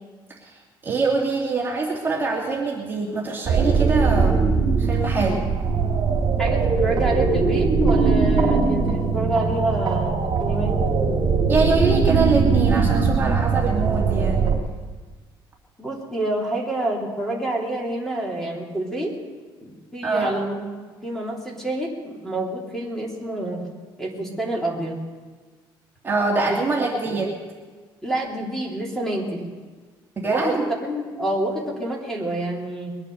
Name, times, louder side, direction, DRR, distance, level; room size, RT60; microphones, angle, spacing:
voice 1, 0.8-5.5 11.5-14.5 20.0-20.3 26.0-27.3 30.2-30.6, right 3 dB, 25° right, -3 dB, 2.5 m, -24 dB
sound 1, 3.5-14.6, right 5 dB, 50° right, 2.7 m, -20 dB
voice 2, 6.4-10.8 15.8-19.1 19.6-20.6 21.0-23.7 24.0-25.0 26.4-26.6 27.0-27.2 28.0-29.5 30.3-33.0, right 1 dB, 5° left, -2 dB, 3.2 m, -28 dB
22.5 x 9.0 x 6.5 m, 1.4 s
cardioid pair, 125°, 9 cm